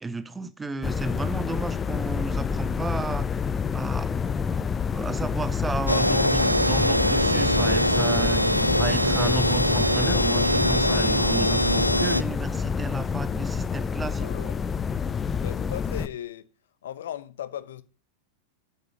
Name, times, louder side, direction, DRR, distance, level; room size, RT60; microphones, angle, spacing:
voice 1, 0.0-3.4 3.7-4.1 4.9-14.3, right 3 dB, 10° right, 0.8 m, -33 dB
sound 1, 0.8-16.1, left 6 dB, 20° left, 0.6 m, -28 dB
sound 2, 5.9-12.2, equal, 90° left, 0.5 m, -23 dB
voice 2, 14.2-14.7 15.4-16.5 16.8-17.8, left 11 dB, 60° left, 1.0 m, -37 dB
9.2 x 8.2 x 7.4 m
figure-of-eight pair, 90°, 0 cm